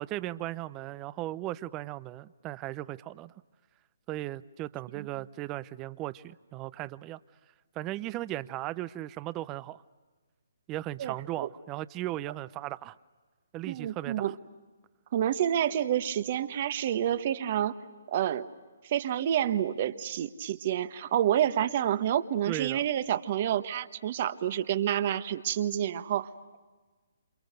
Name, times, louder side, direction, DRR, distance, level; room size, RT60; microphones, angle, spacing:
voice 1, 0.0-3.3 4.1-7.2 7.8-9.8 10.7-13.0 13.5-14.2 22.5-22.8, right 15 dB, 25° right, 17 dB, 0.7 m, -37 dB
voice 2, 11.0-11.5 13.7-14.3 15.1-17.7 18.1-18.5 18.8-26.6, right 10 dB, 45° right, 11 dB, 1.3 m, -29 dB
28.5 x 28.0 x 6.7 m, 1.3 s
figure-of-eight pair, 140°, 0 cm